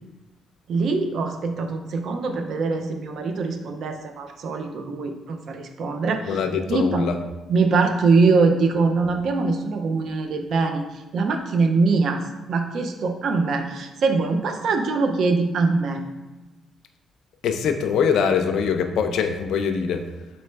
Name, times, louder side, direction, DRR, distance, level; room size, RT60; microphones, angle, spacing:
voice 1, 0.7-7.0 7.5-10.8 11.1-16.0, right 4 dB, 65° right, 6 dB, 0.4 m, -23 dB
voice 2, 6.3-7.2 17.4-20.0, left 6 dB, 75° left, 6 dB, 0.4 m, -23 dB
4.0 x 3.1 x 3.3 m, 1.1 s
cardioid pair, 90°, 0 cm